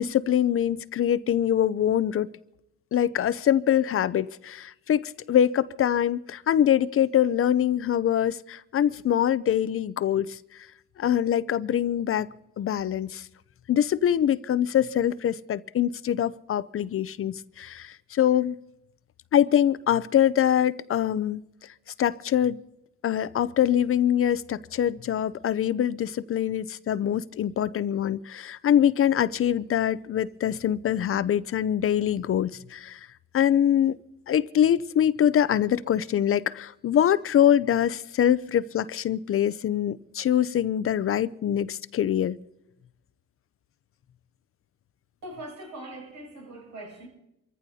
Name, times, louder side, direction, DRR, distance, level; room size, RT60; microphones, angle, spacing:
voice 1, 0.0-2.3 2.9-10.7 11.0-12.3 12.6-13.3 13.7-18.6 19.3-21.4 22.0-22.6 23.0-33.1 33.3-34.0 34.3-42.4, left 10 dB, 45° left, 0.5 m, -24 dB
voice 2, 45.2-47.1, right 1 dB, 75° right, 6.5 m, -41 dB
28.0 x 14.5 x 2.8 m
cardioid pair, 90°, 30 cm